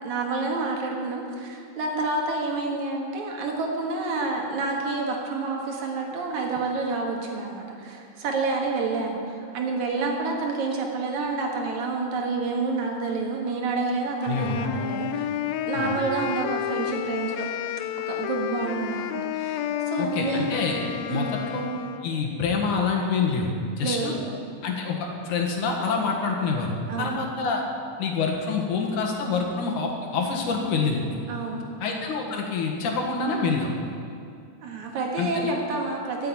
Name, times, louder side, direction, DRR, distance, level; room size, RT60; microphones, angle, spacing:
voice 1, 0.0-15.3 15.7-17.5 18.1-20.5 21.1-21.3 23.8-24.3 26.9-27.3 31.3-31.8 34.6-36.3, right 3 dB, 65° right, 0 dB, 2.9 m, -28 dB
Wind instrument woodwind instrument, 14.2-22.1, left 11 dB, 90° left, 1.5 m, -31 dB
voice 2, 14.3-14.6 15.8-15.9 20.0-20.8 21.1-21.6 22.0-23.5 23.8-24.2 24.6-27.6 28.0-31.0 31.8-33.7 35.2-35.5, left 4 dB, 70° left, 0 dB, 3.0 m, -26 dB
13.5 x 7.8 x 8.8 m, 2.4 s
omnidirectional pair, 3.7 m